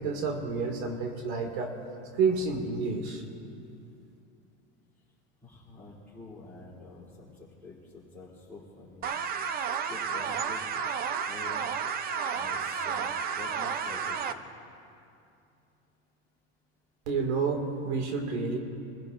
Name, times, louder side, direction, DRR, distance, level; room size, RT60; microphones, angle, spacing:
voice 1, 0.0-1.7 2.1-3.2 17.1-18.6, right 4 dB, 80° right, 2 dB, 2.4 m, -29 dB
voice 2, 5.4-7.3 7.6-9.1 9.9-10.6 10.9-11.7 12.3-14.5, left 3 dB, 5° left, -10 dB, 3.3 m, -47 dB
sound 1, 9.0-14.3, right 6 dB, 30° right, 0.7 m, -32 dB
26.5 x 16.0 x 2.6 m, 2.6 s
supercardioid pair, 140°, 33 cm